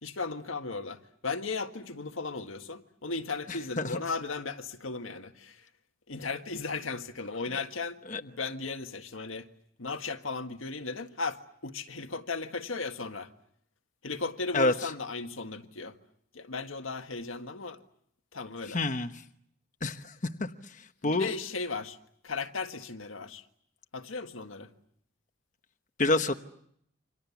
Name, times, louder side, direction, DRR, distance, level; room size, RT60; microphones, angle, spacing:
voice 1, 0.0-5.6 6.1-9.5 9.8-13.3 14.0-15.9 16.3-17.8 18.3-18.8 21.0-22.0 22.2-23.4 23.9-24.7, left 4 dB, 85° left, 1.7 m, -36 dB
voice 2, 3.5-4.0 8.1-8.2 14.5-14.7 18.7-19.1 19.8-20.0 20.4-20.5 21.0-21.3 26.0-26.4, left 2 dB, 40° left, 1.1 m, -27 dB
29.0 x 26.5 x 7.1 m
head